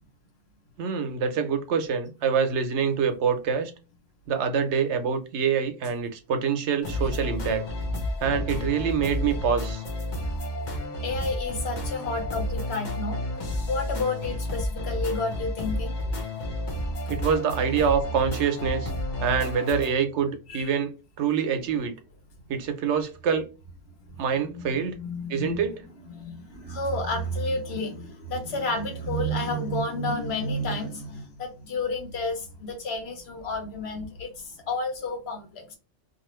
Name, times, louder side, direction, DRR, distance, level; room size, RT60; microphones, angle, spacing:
voice 1, 0.8-3.7 4.3-7.6 8.2-9.8 17.1-18.9 19.2-21.9 22.5-23.4 24.2-25.0 25.3-25.8, right 6 dB, 85° right, 0.9 m, -25 dB
sound 1, 6.8-19.9, left 1 dB, 45° left, 0.8 m, -31 dB
voice 2, 11.0-16.0 20.5-20.7 24.3-25.7 26.0-35.8, left 2 dB, 70° left, 1.1 m, -31 dB
2.6 x 2.5 x 3.0 m
omnidirectional pair, 1.1 m